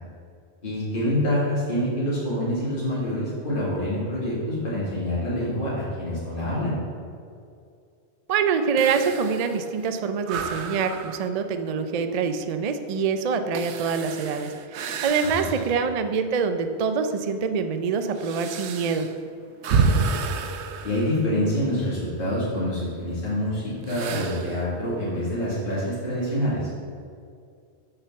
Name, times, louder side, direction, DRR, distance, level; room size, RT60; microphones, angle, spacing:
voice 1, 0.6-6.7 15.2-15.5 19.7-20.1 20.8-26.7, left 1 dB, 55° left, -9 dB, 2.3 m, -26 dB
voice 2, 8.3-19.1, right 5 dB, 50° right, 8 dB, 0.5 m, -25 dB
sound 1, 8.8-15.9 16.4-16.5 17.2-21.8 23.8-24.7, right 4 dB, 85° right, 1.0 m, -30 dB
6.8 x 5.8 x 7.0 m, 2.3 s
omnidirectional pair, 1.1 m